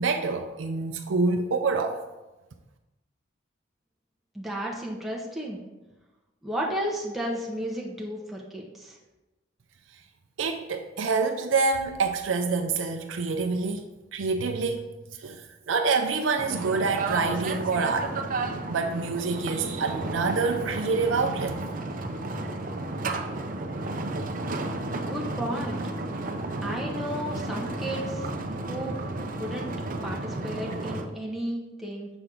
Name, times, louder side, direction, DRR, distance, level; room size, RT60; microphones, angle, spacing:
voice 1, 0.0-2.0 10.4-14.9 15.2-18.2 18.7-21.8, right 4 dB, 90° right, 0.5 m, -27 dB
voice 2, 4.3-5.6 6.4-9.0 25.0-25.8 26.6-28.3 28.7-28.9 29.3-29.7 30.0-32.1, equal, ahead, 0.8 m, -33 dB
sound 1, 16.4-31.1, right 2 dB, 45° right, 0.6 m, -32 dB
6.9 x 5.9 x 3.8 m
head